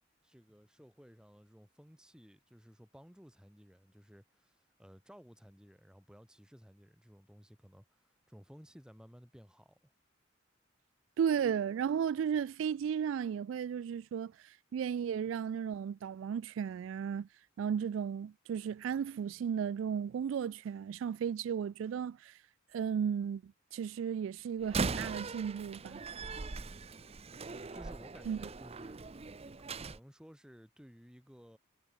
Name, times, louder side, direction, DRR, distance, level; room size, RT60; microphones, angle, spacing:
voice 1, 0.2-9.9 26.5-27.1 27.7-29.0 29.4-31.6, equal, 5° right, 5.6 m, -57 dB
voice 2, 11.2-17.3 17.6-22.4 22.7-26.0 28.3-28.4, right 7 dB, 85° right, 0.3 m, -34 dB
Slam, 24.6-30.0, right 4 dB, 30° right, 0.7 m, -40 dB
head